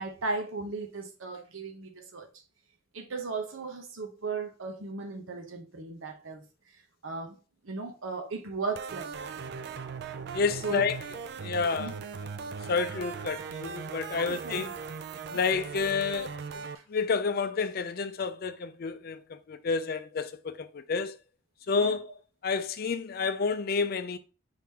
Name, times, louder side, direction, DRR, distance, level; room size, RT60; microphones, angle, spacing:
voice 1, 0.0-2.3 2.9-6.4 6.7-7.4 7.6-9.3 10.6-10.8 11.8-11.9 14.1-14.7 16.7-16.8 21.8-22.0, right 4 dB, 80° right, 0.9 m, -36 dB
sound 1, 8.7-16.8, right 6 dB, 55° right, 0.3 m, -39 dB
voice 2, 10.3-11.0 11.4-11.9 12.7-14.7 15.3-16.6 16.9-21.2 21.7-22.1 22.4-24.2, left 5 dB, 50° left, 0.4 m, -30 dB
4.9 x 3.7 x 2.8 m
head